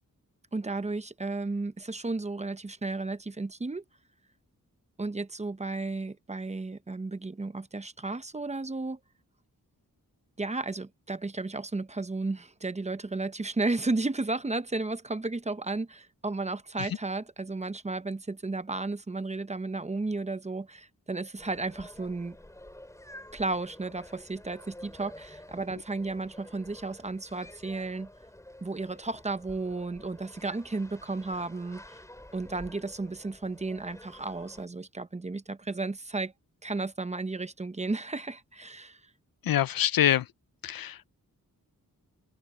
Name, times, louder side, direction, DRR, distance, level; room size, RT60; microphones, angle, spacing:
voice 1, 0.5-3.8 5.0-9.0 10.4-22.4 23.3-28.1 28.6-32.0 32.3-36.3 36.6-39.0, right 3 dB, 20° right, 0.7 m, -33 dB
sound 1, 21.4-34.7, left 1 dB, 10° left, 3.8 m, -50 dB
voice 2, 39.4-40.3 40.6-41.0, left 11 dB, 80° left, 0.6 m, -25 dB
wide cardioid pair, 165°, 35 cm